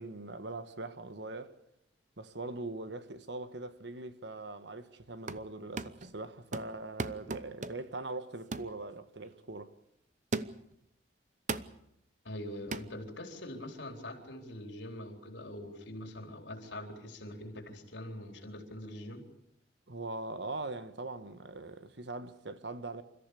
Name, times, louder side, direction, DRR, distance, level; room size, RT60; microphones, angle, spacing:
voice 1, 0.0-1.6 2.2-9.7 19.9-23.0, right 2 dB, 70° right, 1.4 m, -41 dB
sound 1, 5.0-5.5 5.8-6.1 6.5-8.0 8.5-8.8 9.3-9.4 10.3-10.8 11.5-11.8 12.7-12.9, right 3 dB, 40° right, 0.8 m, -38 dB
voice 2, 12.2-19.2, left 1 dB, 75° left, 4.2 m, -43 dB
28.5 x 14.5 x 8.5 m
head